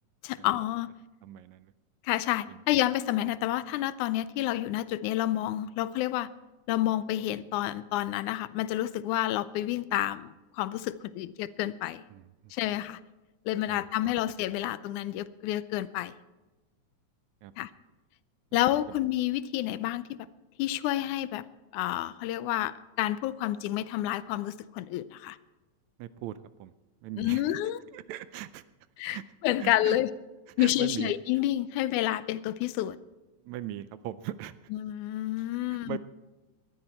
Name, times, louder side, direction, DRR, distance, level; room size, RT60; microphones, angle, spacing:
voice 1, 0.2-0.9 2.0-6.3 6.7-12.0 12.5-13.0 13.5-16.2 17.6-17.7 18.5-20.3 20.6-21.5 21.7-25.4 27.2-27.8 29.0-29.2 29.4-30.1 30.6-33.0 34.7-36.0, left 14 dB, 80° left, 16 dB, 2.0 m, -29 dB
voice 2, 1.2-1.7 2.5-2.6 12.1-12.5 13.7-14.1 17.4-17.5 18.9-19.0 26.0-26.7 27.0-27.6 27.9-28.6 29.1-29.2 29.6-30.0 30.6-31.1 33.4-34.5 35.7-36.0, right 13 dB, 80° right, 14 dB, 1.8 m, -39 dB
19.0 x 13.0 x 4.4 m, 1.1 s
omnidirectional pair, 3.5 m